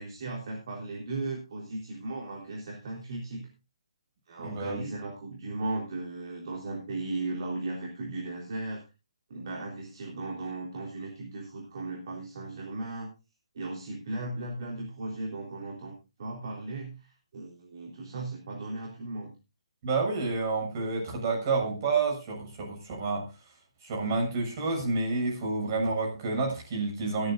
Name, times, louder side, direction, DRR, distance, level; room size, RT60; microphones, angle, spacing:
voice 1, 0.0-3.5 4.3-8.8 9.3-13.1 13.6-19.3, right 2 dB, 45° right, -1 dB, 3.6 m, -36 dB
voice 2, 4.4-4.8 19.8-23.3 23.8-27.3, right 3 dB, 30° right, 1 dB, 6.8 m, -29 dB
23.5 x 9.6 x 2.5 m, 0.27 s
hypercardioid pair, 160°, 3 cm